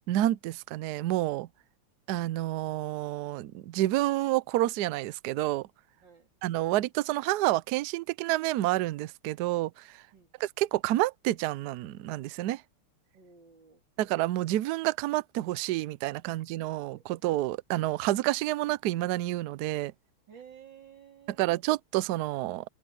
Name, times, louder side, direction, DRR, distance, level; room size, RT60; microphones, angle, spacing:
voice 1, 0.1-1.5 2.1-5.7 6.4-9.8 10.6-12.6 14.0-19.9 21.4-22.6, right 15 dB, 90° right, 0.8 m, -29 dB
voice 2, 13.1-13.8 20.3-21.4, right 8 dB, 55° right, 3.9 m, -53 dB
omnidirectional pair, 2.4 m